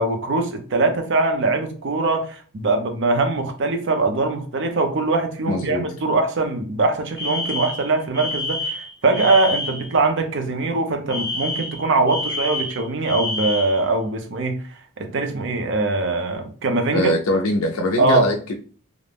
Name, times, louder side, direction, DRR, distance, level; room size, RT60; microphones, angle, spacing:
voice 1, 0.0-14.6 15.0-17.1 18.0-18.3, right 3 dB, 55° right, 0.5 m, -22 dB
voice 2, 5.5-5.8 16.9-18.5, left 1 dB, 65° left, 0.4 m, -22 dB
Alarm, 7.2-9.9 11.1-13.8, left 2 dB, 20° left, 0.6 m, -28 dB
2.5 x 2.0 x 3.2 m
head